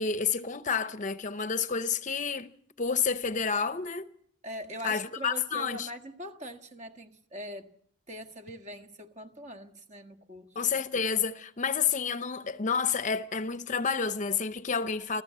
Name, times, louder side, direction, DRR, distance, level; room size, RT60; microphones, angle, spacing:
voice 1, 0.0-2.5 2.8-4.1 4.8-5.9 10.5-15.2, left 6 dB, 40° left, 0.8 m, -29 dB
voice 2, 4.4-7.7 8.1-10.5, right 1 dB, 35° right, 1.6 m, -42 dB
29.5 x 14.0 x 7.5 m
head